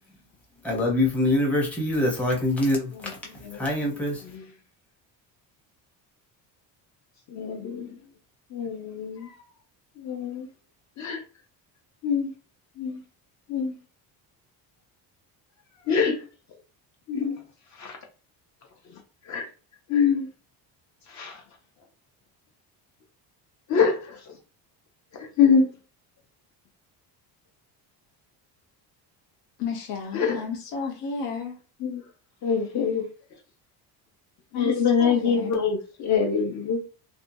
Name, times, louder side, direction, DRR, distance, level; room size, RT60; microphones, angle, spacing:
voice 1, 0.6-4.2, left 1 dB, 5° left, 0.6 m, -25 dB
voice 2, 2.9-3.6 4.2-4.5 7.3-8.1 8.5-9.5 10.0-10.5 11.0-11.2 12.0-12.3 12.8-13.0 13.5-13.8 15.8-16.3 17.1-17.4 17.7-18.0 18.8-19.5 19.9-20.3 21.0-21.4 23.7-24.4 25.1-25.7 30.1-30.5 31.8-32.0 32.4-33.1 33.3-33.4 34.5-36.8, left 6 dB, 45° left, 0.5 m, -25 dB
voice 3, 29.6-31.6 34.5-34.7 35.0-35.6, left 5 dB, 85° left, 0.9 m, -32 dB
2.6 x 2.2 x 2.6 m
cardioid pair, 150°, 42 cm